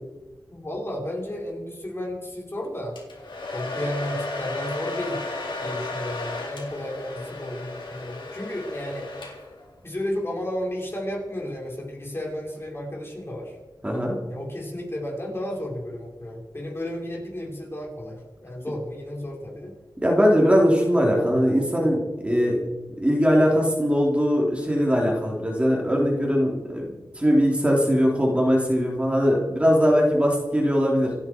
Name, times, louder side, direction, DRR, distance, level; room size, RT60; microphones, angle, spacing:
voice 1, 0.5-2.9 3.5-5.2 5.6-9.1 9.8-13.6 14.3-19.7, left 1 dB, 30° left, -2 dB, 5.2 m, -33 dB
Domestic sounds home sounds, 3.0-9.7, left 2 dB, 80° left, 3.7 m, -34 dB
voice 2, 13.8-14.2 20.0-22.6 23.0-26.9 27.1-31.1, equal, 15° right, -2 dB, 3.7 m, -20 dB
28.5 x 9.9 x 4.7 m, 1.2 s
wide cardioid pair, 90°, 8 cm